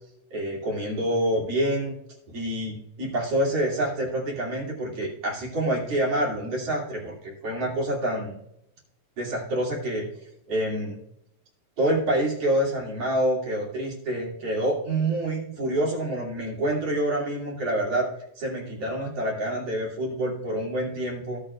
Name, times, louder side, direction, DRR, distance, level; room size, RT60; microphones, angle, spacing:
voice 1, 0.3-1.9 2.3-8.4 9.2-10.1 10.5-11.0 11.8-18.1 18.4-21.4, right 1 dB, 45° right, -4 dB, 3.5 m, -27 dB
17.0 x 6.7 x 2.4 m, 0.77 s
omnidirectional pair, 3.9 m